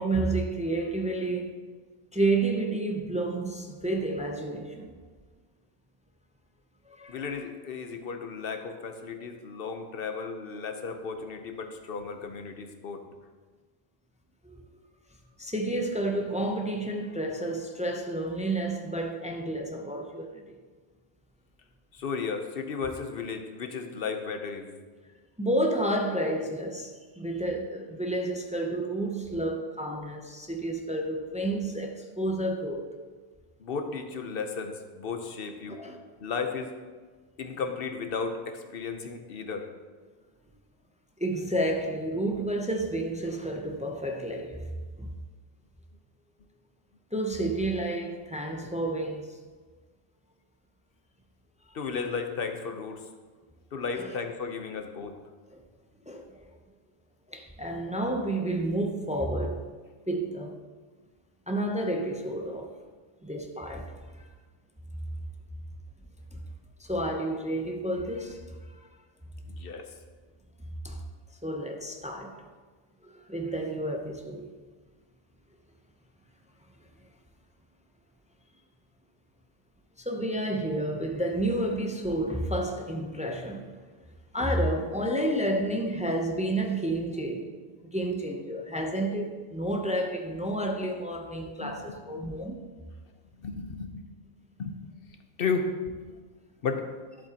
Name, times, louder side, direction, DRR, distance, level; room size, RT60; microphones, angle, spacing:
voice 1, 0.0-1.6 2.1-4.9 6.9-7.3 14.4-14.5 15.4-20.5 25.4-32.9 35.7-36.0 41.2-44.7 45.0-45.1 47.1-49.4 53.9-54.1 55.5-55.6 56.1-56.5 57.3-59.7 60.1-60.6 61.5-62.7 63.2-64.3 66.3-66.4 66.8-68.4 68.7-68.9 70.8-71.0 71.4-72.4 73.0-74.5 80.0-83.7 84.3-92.6, right 1 dB, 10° right, 0.4 m, -30 dB
voice 2, 7.1-13.0 21.9-24.7 33.6-35.8 36.2-36.7 37.4-39.7 51.7-53.0 53.7-55.1 69.6-69.9 91.6-92.3 93.4-94.0 94.6-94.8 95.4-96.2 96.6-96.8, left 5 dB, 55° left, 0.9 m, -34 dB
11.0 x 7.5 x 2.9 m
omnidirectional pair, 1.2 m